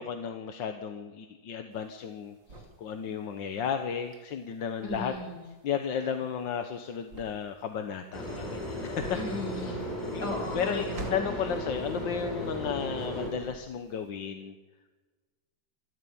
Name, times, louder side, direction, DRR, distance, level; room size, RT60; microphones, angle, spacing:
voice 1, 0.0-5.1 5.6-9.2 9.6-9.8 10.1-10.2 10.5-10.9 11.1-14.5, left 7 dB, 85° left, 7 dB, 1.8 m, -34 dB
sound 1, 1.7-12.9 13.2-14.0, right 2 dB, 80° right, 3.5 m, -47 dB
voice 2, 4.8-5.4 9.2-9.8 10.2-11.5, left 2 dB, 60° left, -1 dB, 5.3 m, -36 dB
sound 2, 8.1-13.3, equal, 20° left, 5.6 m, -35 dB
27.5 x 13.0 x 8.7 m, 1.3 s
omnidirectional pair, 1.9 m